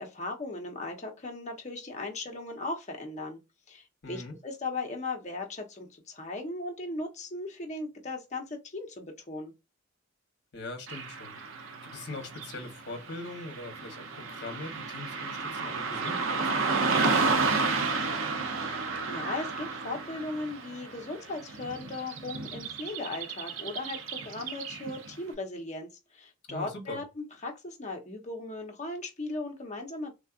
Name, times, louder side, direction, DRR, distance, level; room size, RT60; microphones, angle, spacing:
voice 1, 0.0-3.4 3.7-9.5 18.6-30.1, left 2 dB, 35° left, 0.9 m, -37 dB
voice 2, 4.0-4.3 10.5-17.6 26.5-27.0, left 2 dB, 55° left, 1.0 m, -42 dB
Car passing by / Traffic noise roadway noise, 10.9-25.1, right 4 dB, 75° right, 0.6 m, -32 dB
3.6 x 2.4 x 2.4 m
head